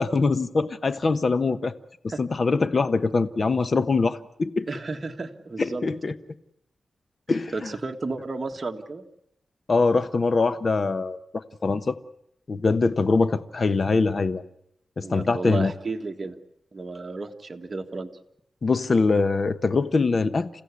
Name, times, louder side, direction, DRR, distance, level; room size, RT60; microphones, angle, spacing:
voice 1, 0.0-1.7 2.2-4.7 5.6-6.1 7.3-7.7 9.7-12.0 12.5-14.4 15.0-15.7 18.6-20.5, left 3 dB, 45° left, 13 dB, 1.0 m, -23 dB
voice 2, 4.7-5.8 7.5-9.0 15.0-16.4 16.7-18.1, right 3 dB, 35° right, 3 dB, 1.7 m, -33 dB
28.5 x 15.5 x 8.4 m, 0.76 s
wide cardioid pair, 110°, 0 cm